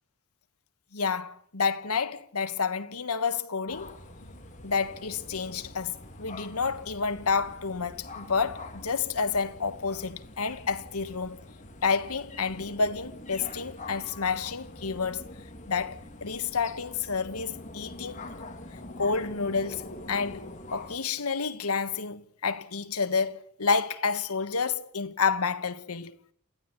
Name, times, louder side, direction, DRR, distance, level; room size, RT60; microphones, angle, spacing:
voice 1, 0.9-4.0 4.6-11.4 11.8-15.2 15.7-18.3 19.0-19.8 20.1-20.4 20.7-26.2, left 5 dB, 80° left, 1.3 m, -29 dB
sound 1, 3.7-21.0, left 2 dB, 35° left, 2.7 m, -45 dB
29.0 x 15.0 x 9.6 m
head